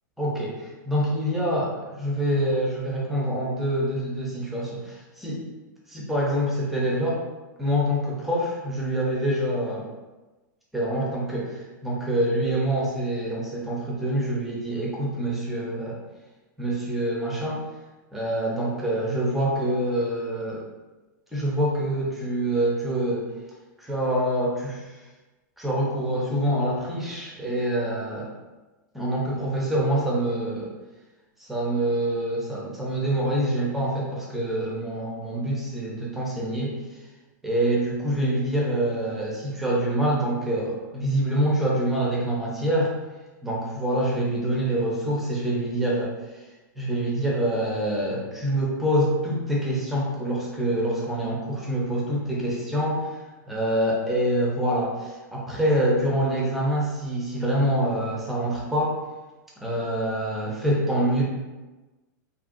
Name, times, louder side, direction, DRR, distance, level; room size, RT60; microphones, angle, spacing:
voice 1, 0.2-5.4 5.9-7.2 7.6-9.9 10.7-16.0 16.6-17.6 18.1-20.6 21.3-23.3 23.8-24.8 25.6-28.3 28.9-30.7 31.5-36.7 37.4-42.9 43.4-46.1 46.8-53.0 53.5-58.9 59.6-61.2, right 1 dB, ahead, -4 dB, 0.7 m, -26 dB
2.8 x 2.7 x 2.5 m, 1.2 s
hypercardioid pair, 130°, 11 cm